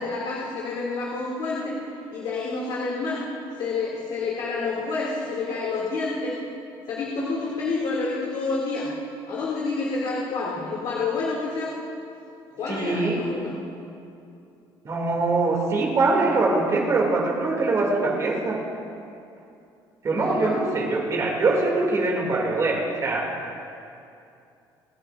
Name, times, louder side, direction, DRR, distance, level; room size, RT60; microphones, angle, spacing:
voice 1, 0.0-1.8 2.1-3.2 3.5-6.4 6.9-8.9 9.3-11.7 12.5-13.5 20.1-20.5, left 3 dB, 65° left, -5 dB, 2.2 m, -28 dB
voice 2, 12.7-13.2 14.8-18.6 20.0-23.3, right 3 dB, 35° right, 0 dB, 2.3 m, -23 dB
29.5 x 10.5 x 2.5 m, 2.6 s
cardioid pair, 125°, 9 cm